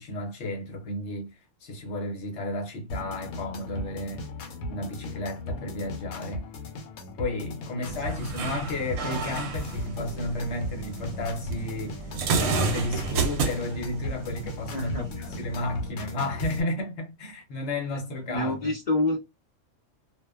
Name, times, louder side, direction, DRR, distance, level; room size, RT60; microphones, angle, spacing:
voice 1, 0.0-4.3 4.7-6.5 7.2-18.7, left 2 dB, 55° left, 1.1 m, -33 dB
sound 1, 2.9-16.6, left 2 dB, 85° left, 1.1 m, -38 dB
sound 2, 7.9-15.9, right 4 dB, 90° right, 1.0 m, -31 dB
voice 2, 14.7-15.1 18.3-19.2, left 1 dB, 35° left, 0.7 m, -27 dB
2.5 x 2.2 x 2.3 m
omnidirectional pair, 1.5 m